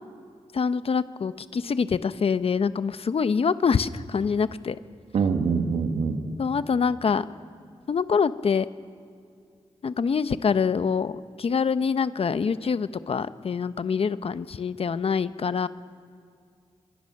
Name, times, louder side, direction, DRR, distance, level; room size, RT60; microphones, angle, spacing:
voice 1, 0.5-4.8 6.4-7.2 7.9-8.7 9.8-11.1 11.4-15.7, left 6 dB, 60° left, 13 dB, 0.8 m, -25 dB
voice 2, 5.1-6.2, right 5 dB, 85° right, 5 dB, 2.1 m, -24 dB
25.5 x 22.5 x 6.5 m, 2.3 s
cardioid pair, 60°, 11 cm